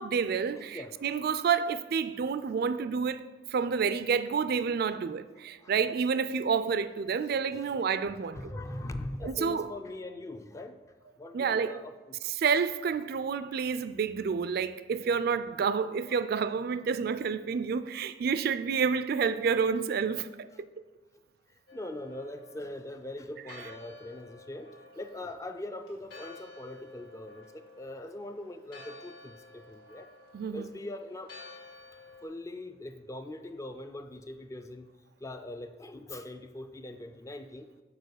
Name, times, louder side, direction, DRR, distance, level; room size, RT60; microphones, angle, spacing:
voice 1, 0.0-3.2 3.5-8.4 9.2-9.7 11.3-11.8 12.4-20.7 30.3-30.6, right 6 dB, 55° right, 0.3 m, -29 dB
voice 2, 0.5-1.5 5.6-5.7 7.3-12.3 13.5-13.6 16.1-16.2 20.5-20.6 21.1-30.1 30.5-31.3 32.2-34.9 35.2-37.7, left 1 dB, 15° left, 0.3 m, -42 dB
Church bell, 21.7-32.2, left 3 dB, 75° left, 2.0 m, -52 dB
6.7 x 4.7 x 6.5 m
head